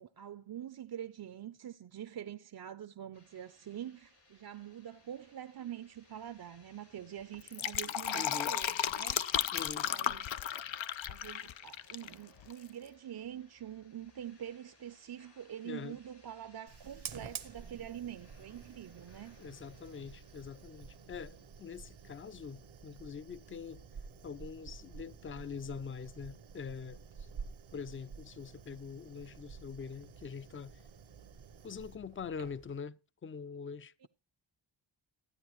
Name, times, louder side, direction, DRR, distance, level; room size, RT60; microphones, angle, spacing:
voice 1, 0.0-9.3 9.8-10.5 11.1-19.4 34.0-34.1, right 10 dB, 55° right, 0.5 m, -45 dB
sound 1, 3.1-22.6, left 2 dB, 60° left, 3.5 m, -65 dB
Fill (with liquid), 7.3-12.1 12.4-12.5, left 10 dB, 75° left, 0.6 m, -34 dB
voice 2, 8.1-8.5 9.5-9.9 15.6-16.0 19.4-23.8 24.2-27.3 27.7-30.8 31.6-34.1, left 6 dB, 30° left, 0.4 m, -44 dB
Fire, 16.7-32.8, right 6 dB, 85° right, 1.0 m, -50 dB
13.0 x 9.3 x 3.0 m
cardioid pair, 55°, 46 cm